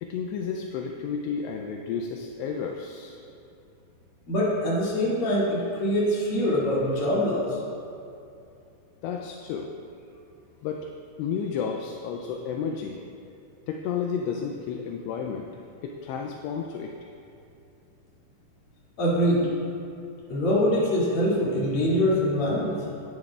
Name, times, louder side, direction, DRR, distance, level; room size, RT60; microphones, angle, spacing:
voice 1, 0.0-3.2 9.0-9.7 10.6-10.9 11.2-13.0 13.7-15.5 15.8-16.9, left 6 dB, 80° left, 2 dB, 2.6 m, -32 dB
voice 2, 4.3-7.6 19.0-19.5 20.3-22.8, equal, 40° left, -7 dB, 2.7 m, -24 dB
16.0 x 9.6 x 2.4 m, 2.6 s
omnidirectional pair, 5.2 m